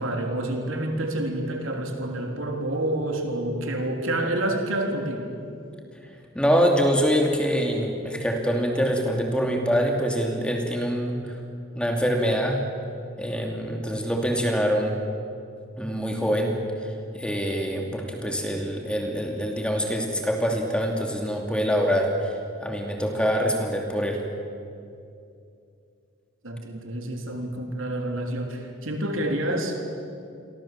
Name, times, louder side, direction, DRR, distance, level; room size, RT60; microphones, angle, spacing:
voice 1, 0.0-5.3 26.4-29.8, right 1 dB, 75° right, 3 dB, 3.6 m, -28 dB
voice 2, 6.3-11.4 11.7-12.6 13.2-15.0 15.8-24.2, equal, 5° left, 2 dB, 2.8 m, -25 dB
29.5 x 23.5 x 7.5 m, 2.5 s
head